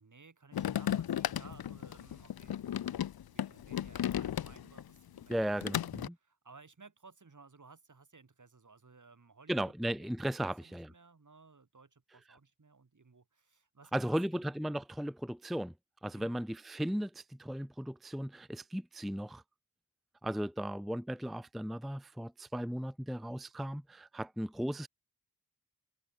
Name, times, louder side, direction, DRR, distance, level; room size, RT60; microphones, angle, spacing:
voice 1, 0.0-5.9 6.2-10.1 10.4-14.4 16.1-16.4, right 4 dB, 55° right, 2.9 m, -59 dB
sound 1, 0.5-4.8 5.2-6.1, left 10 dB, 85° left, 0.5 m, -35 dB
voice 2, 5.3-6.1 9.5-10.9 13.9-15.7 16.0-19.4 20.2-24.9, equal, ahead, 0.6 m, -36 dB
wide cardioid pair, 80°, 36 cm